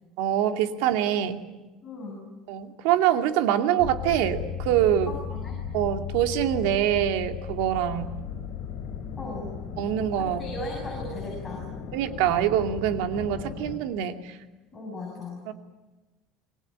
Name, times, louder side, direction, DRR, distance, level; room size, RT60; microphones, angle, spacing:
voice 1, 0.2-1.4 2.5-5.1 5.7-8.1 9.8-10.5 11.9-14.4 15.5-15.6, right 11 dB, 80° right, 6 dB, 2.5 m, -25 dB
voice 2, 1.8-2.2 5.1-5.6 9.2-9.5 10.2-11.6 14.7-15.5, left 1 dB, 15° left, -2 dB, 7.8 m, -37 dB
sound 1, 3.8-13.8, left 7 dB, 70° left, 4.3 m, -36 dB
27.5 x 22.0 x 9.0 m, 1.2 s
cardioid pair, 175°, 0 cm